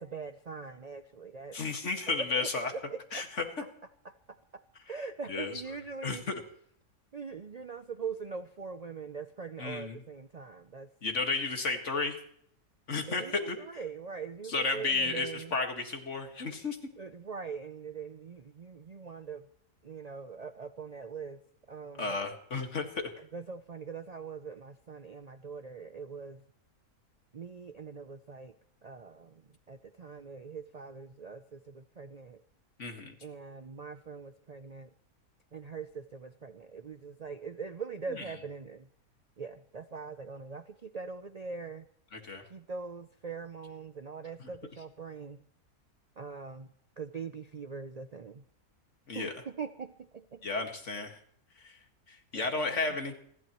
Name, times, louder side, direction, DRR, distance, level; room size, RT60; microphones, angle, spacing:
voice 1, 0.0-1.6 2.2-3.2 4.0-6.2 7.1-10.9 13.1-15.6 17.0-19.5 19.8-21.4 21.7-22.1 23.2-26.4 27.3-28.6 28.8-32.4 33.2-34.9 35.5-38.9 39.4-41.8 42.5-45.4 46.2-46.7 47.0-48.4 49.1-50.5 52.3-53.0, right 5 dB, 85° right, 10 dB, 0.3 m, -42 dB
voice 2, 1.5-2.7 3.1-3.4 5.3-5.6 6.0-6.4 9.6-10.0 11.0-12.2 12.9-13.6 14.5-16.8 22.0-23.1 32.8-33.1 38.1-38.2 42.1-42.4 44.4-44.5 49.1-49.3 50.4-51.2 51.6-51.8 52.1-53.2, left 3 dB, 50° left, 4 dB, 2.2 m, -33 dB
29.0 x 12.0 x 3.0 m, 0.65 s
omnidirectional pair, 1.6 m